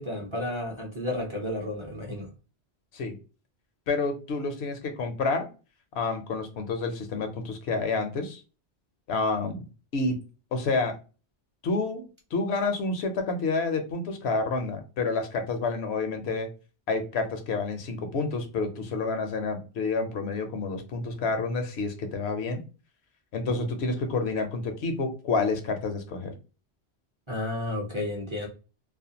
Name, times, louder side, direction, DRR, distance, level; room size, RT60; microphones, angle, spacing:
voice 1, 0.0-2.3 27.3-28.5, left 1 dB, 35° right, 0.5 m, -32 dB
voice 2, 3.9-5.5 5.9-8.4 9.1-9.6 9.9-10.1 10.5-10.9 11.6-16.5 16.9-22.6 23.3-26.3, left 3 dB, 75° left, 0.9 m, -29 dB
2.4 x 2.1 x 2.7 m
omnidirectional pair, 1.1 m